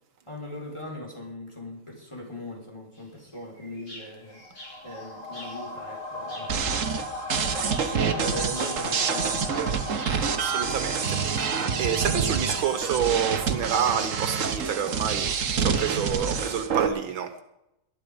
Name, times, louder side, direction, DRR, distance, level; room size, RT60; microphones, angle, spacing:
voice 1, 0.3-4.4 4.8-6.9 7.8-9.5 15.5-16.9, left 1 dB, 15° left, -1 dB, 4.4 m, -39 dB
sound 1, 2.9-5.7 6.3-6.7 7.7-9.0 9.6-10.3, equal, 60° left, 7.7 m, -47 dB
sound 2, 4.3-15.8 16.1-16.2, left 2 dB, 85° left, 4.4 m, -38 dB
sound 3, 6.5-16.9, right 6 dB, 45° right, 1.2 m, -27 dB
voice 2, 10.3-11.5 11.8-15.3 15.6-17.4, right 8 dB, 70° right, 9 dB, 1.8 m, -28 dB
20.0 x 12.0 x 5.2 m, 0.86 s
omnidirectional pair, 2.3 m